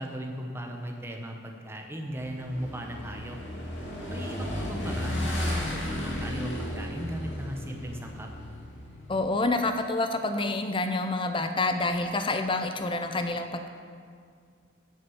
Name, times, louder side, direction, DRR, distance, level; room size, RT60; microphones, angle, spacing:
voice 1, 0.0-3.4 4.1-8.3, equal, 10° right, 2 dB, 0.8 m, -37 dB
Motorcycle / Engine, 2.2-9.2, left 1 dB, 60° left, 2.3 m, -34 dB
voice 2, 9.1-13.7, left 2 dB, 25° left, 7 dB, 0.5 m, -28 dB
9.3 x 5.9 x 7.1 m, 2.2 s
head